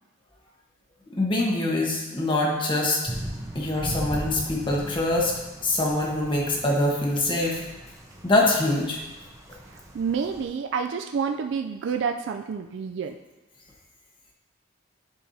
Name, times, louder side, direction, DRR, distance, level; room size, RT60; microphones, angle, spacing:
voice 1, 1.2-3.0 3.5-5.3 5.6-7.6 8.2-9.0, left 2 dB, 25° left, -2 dB, 1.3 m, -24 dB
sound 1, 3.1-10.4, right 1 dB, 15° right, 0.9 m, -39 dB
voice 2, 9.7-13.2, right 6 dB, 65° right, 6 dB, 0.3 m, -29 dB
10.5 x 4.7 x 2.7 m, 1.0 s
head